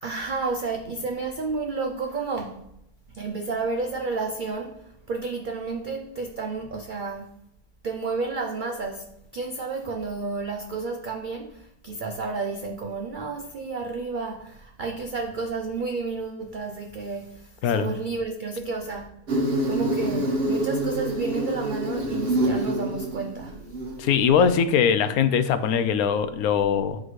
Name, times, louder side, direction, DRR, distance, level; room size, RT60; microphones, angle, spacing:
voice 1, 0.0-2.6 3.1-7.4 7.8-19.1 19.6-23.6, right 4 dB, 70° right, 0.4 m, -31 dB
Insect, 19.3-24.3, right 1 dB, 45° right, 1.1 m, -26 dB
voice 2, 24.0-27.0, left 7 dB, 80° left, 1.1 m, -21 dB
10.5 x 3.8 x 3.1 m
omnidirectional pair, 1.5 m